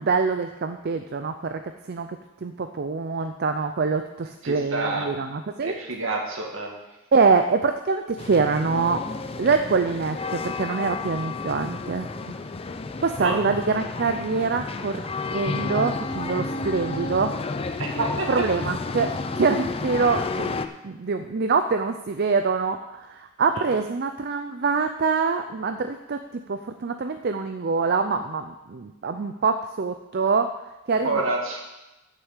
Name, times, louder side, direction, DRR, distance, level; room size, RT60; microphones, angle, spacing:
voice 1, 0.0-5.7 7.1-9.0 9.4-12.4 13.0-15.0 15.3-17.3 18.3-30.5 30.9-31.2, right 4 dB, 50° right, 7 dB, 0.5 m, -25 dB
voice 2, 4.4-5.1 5.6-6.7 13.2-13.4 17.8-18.4 23.6-23.8 31.0-31.6, right 2 dB, 65° right, 0 dB, 2.2 m, -28 dB
sound 1, 8.2-20.7, left 3 dB, 25° left, 0.5 m, -31 dB
9.0 x 6.8 x 7.3 m, 1.0 s
head